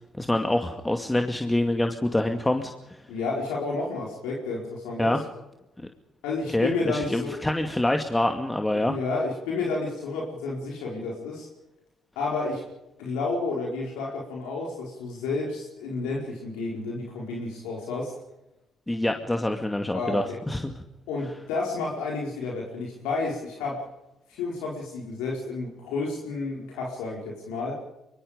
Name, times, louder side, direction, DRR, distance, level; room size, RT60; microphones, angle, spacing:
voice 1, 0.1-3.0 5.0-5.2 5.8-5.9 6.5-9.0 18.9-20.7, left 1 dB, 15° left, 5 dB, 2.3 m, -26 dB
voice 2, 3.1-5.2 6.2-7.4 8.7-11.5 12.1-12.6 13.0-18.1 19.9-20.4 21.1-23.8 24.3-27.8, left 3 dB, 85° left, -2 dB, 4.9 m, -31 dB
24.5 x 23.5 x 5.2 m, 0.93 s
hypercardioid pair, 55°, 0 cm